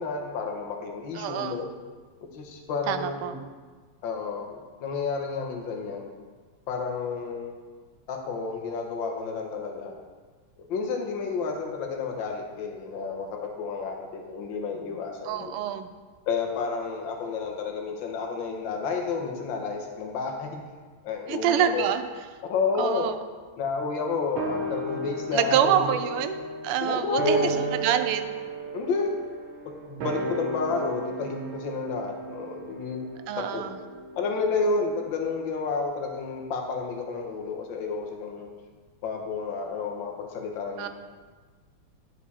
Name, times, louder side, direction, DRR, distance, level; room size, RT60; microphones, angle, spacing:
voice 1, 0.0-1.7 2.2-3.4 4.0-6.1 6.7-7.5 8.1-9.9 10.7-15.5 16.3-20.6 21.0-21.9 22.5-23.1 23.6-26.0 26.8-27.6 28.7-29.1 29.9-33.0 33.4-33.6 34.2-38.5 39.0-40.9, left 4 dB, 65° left, 2 dB, 1.7 m, -30 dB
voice 2, 1.1-1.5 2.9-3.3 15.3-15.9 21.3-22.0 22.8-23.1 25.3-26.4 26.6-27.4 27.8-28.2 33.3-33.7 40.8-40.9, right 9 dB, 85° right, 9 dB, 1.5 m, -26 dB
sound 1, 24.4-35.0 35.2-35.3, right 2 dB, 70° right, 1.7 m, -34 dB
10.5 x 6.2 x 4.2 m, 1.4 s
omnidirectional pair, 2.4 m